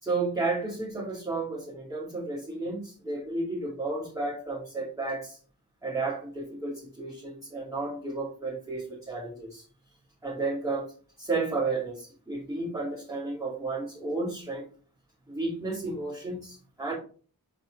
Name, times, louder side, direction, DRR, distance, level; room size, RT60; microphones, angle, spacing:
voice 1, 0.0-5.4 5.8-9.6 10.2-10.9 11.2-14.6 15.3-16.9, right 3 dB, 10° right, -8 dB, 2.8 m, -32 dB
6.8 x 5.2 x 3.3 m, 0.41 s
wide cardioid pair, 55°, 37 cm